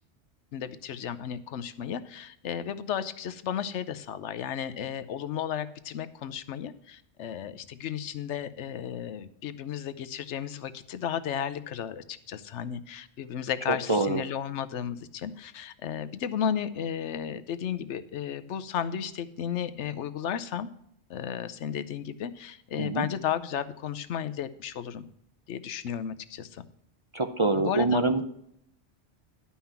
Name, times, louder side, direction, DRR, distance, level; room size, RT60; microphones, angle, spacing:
voice 1, 0.5-20.7 21.1-25.0 25.5-26.6 27.5-28.0, left 9 dB, 80° left, 13 dB, 1.0 m, -34 dB
voice 2, 13.7-14.2 22.8-23.1 27.1-28.2, right 2 dB, 30° right, 7 dB, 0.6 m, -25 dB
11.5 x 5.7 x 5.7 m, 0.71 s
omnidirectional pair, 1.2 m